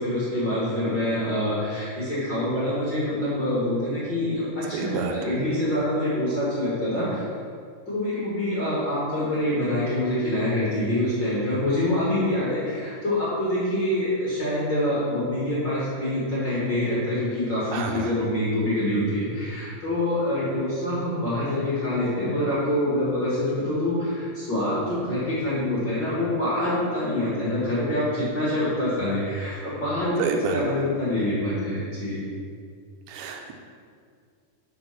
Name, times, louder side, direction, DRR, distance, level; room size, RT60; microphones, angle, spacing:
voice 1, 0.0-7.2 7.9-30.2 30.5-32.2, left 1 dB, 45° left, -9 dB, 1.6 m, -25 dB
voice 2, 4.7-5.4 17.7-18.1 30.2-30.9 33.1-33.5, right 4 dB, 80° right, 3 dB, 2.5 m, -29 dB
5.9 x 5.9 x 5.8 m, 2.2 s
omnidirectional pair, 4.4 m